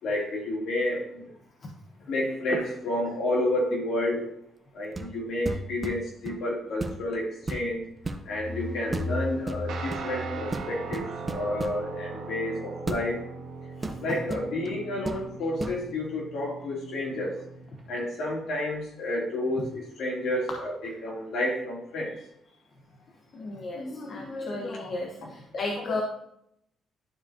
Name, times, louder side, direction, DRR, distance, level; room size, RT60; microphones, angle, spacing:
voice 1, 0.0-1.3 2.1-4.3 4.7-7.8 8.3-13.2 14.0-17.3 17.9-20.7 21.0-22.1, left 1 dB, 75° left, -3 dB, 3.0 m, -30 dB
sound 1, 4.9-5.2 5.5-6.4 6.8-7.1 7.4-8.2 8.9-9.1 9.5-10.1 10.5-11.8 12.9-13.1 13.8-14.8 15.1-15.2 15.6-15.8, right 2 dB, 25° right, 0.8 m, -34 dB
sound 2, 8.0-11.6, left 2 dB, 30° left, 1.6 m, -37 dB
Guitar, 9.7-17.8, right 4 dB, 85° right, 1.6 m, -40 dB
voice 2, 13.8-14.2 23.3-26.0, left 2 dB, 55° left, 0 dB, 1.1 m, -34 dB
11.5 x 4.8 x 2.8 m, 0.75 s
cardioid pair, 90°, 0 cm